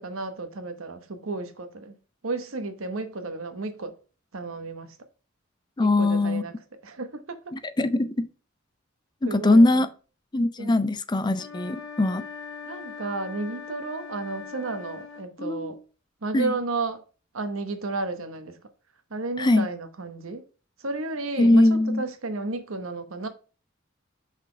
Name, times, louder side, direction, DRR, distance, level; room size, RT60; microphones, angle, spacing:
voice 1, 0.0-2.0 2.2-3.9 4.3-4.9 5.8-6.5 6.8-7.5 9.2-9.8 10.6-10.9 12.6-15.8 16.2-17.0 17.3-18.6 19.1-20.4 20.8-23.3, right 3 dB, 85° right, 1.0 m, -32 dB
voice 2, 5.8-6.4 7.8-8.3 9.2-9.9 10.3-12.2 15.4-15.7 16.3-16.5 19.4-19.7 21.4-22.0, left 2 dB, 20° left, 0.4 m, -21 dB
sound 1, 11.3-15.3, left 6 dB, 65° left, 2.6 m, -40 dB
5.7 x 4.1 x 4.5 m
head